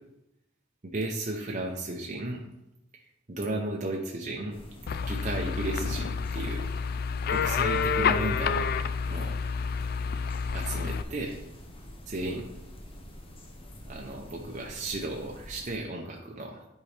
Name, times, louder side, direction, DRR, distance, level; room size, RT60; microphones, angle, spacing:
voice 1, 0.8-2.4 2.9-4.6 5.0-6.8 7.3-9.3 10.5-11.4 12.1-12.5 13.9-16.7, right 2 dB, 40° right, 0 dB, 0.7 m, -34 dB
sound 1, 4.5-15.8, equal, 25° left, 0.9 m, -46 dB
sound 2, 4.9-11.0, left 6 dB, 50° left, 0.3 m, -29 dB
9.9 x 4.6 x 3.3 m, 0.90 s
head